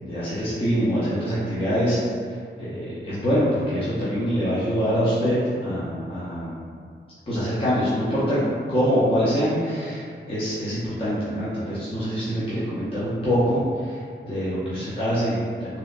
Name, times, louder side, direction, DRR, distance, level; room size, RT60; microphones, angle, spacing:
voice 1, 0.1-2.0 2.3-6.5 7.3-8.4 8.7-15.8, equal, 30° left, -11 dB, 0.5 m, -24 dB
2.7 x 2.2 x 2.4 m, 2.2 s
wide cardioid pair, 155°, 20 cm